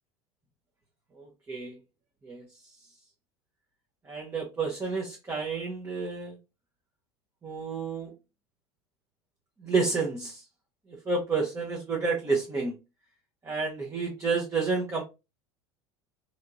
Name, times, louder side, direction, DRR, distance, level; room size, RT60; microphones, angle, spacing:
voice 1, 1.1-1.8 2.2-2.4 4.0-6.4 7.4-8.1 9.6-10.4 10.9-12.8 13.4-15.0, right 4 dB, 20° right, 0.9 m, -30 dB
3.4 x 3.0 x 2.6 m
hypercardioid pair, 80°, 15 cm